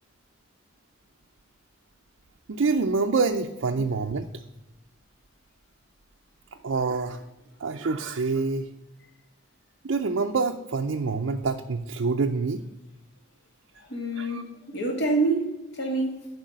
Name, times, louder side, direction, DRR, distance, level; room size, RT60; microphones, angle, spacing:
voice 1, 2.5-4.3 6.6-7.2 7.6-8.7 9.8-12.6 14.2-14.4, right 4 dB, 65° right, 0.5 m, -26 dB
voice 2, 13.9-16.3, right 2 dB, 55° left, 2.1 m, -27 dB
10.5 x 5.0 x 6.2 m
head